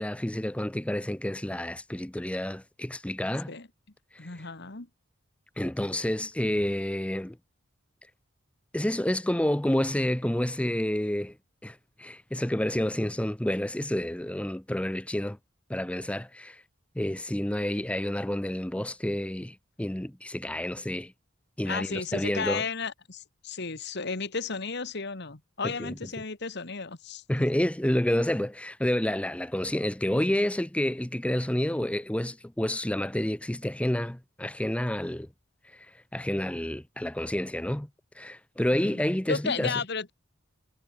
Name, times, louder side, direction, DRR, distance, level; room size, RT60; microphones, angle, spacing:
voice 1, 0.0-3.5 5.6-7.4 8.7-11.4 11.6-15.4 15.7-16.6 17.0-21.1 21.6-22.6 25.6-25.9 27.3-35.3 35.7-35.9 36.1-37.9 38.2-39.7, left 1 dB, 5° left, 0.6 m, -29 dB
voice 2, 4.2-4.9 21.7-27.2 38.7-39.0 39.3-40.1, left 4 dB, 55° left, 1.8 m, -33 dB
head